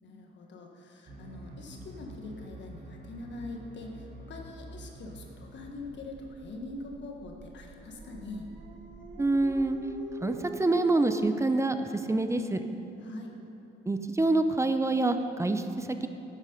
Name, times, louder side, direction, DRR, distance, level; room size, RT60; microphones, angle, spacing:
voice 1, 0.0-8.5 13.0-13.3, left 2 dB, 65° left, 1 dB, 1.5 m, -43 dB
sound 1, 1.0-10.0, right 1 dB, 45° right, 1.9 m, -48 dB
Dog, 7.7-11.2, right 1 dB, 75° right, 1.4 m, -44 dB
voice 2, 9.2-9.8 10.2-12.6 13.9-16.1, right 2 dB, 15° right, 8 dB, 0.7 m, -26 dB
12.0 x 8.3 x 5.3 m, 2.9 s
cardioid pair, 90°, 20 cm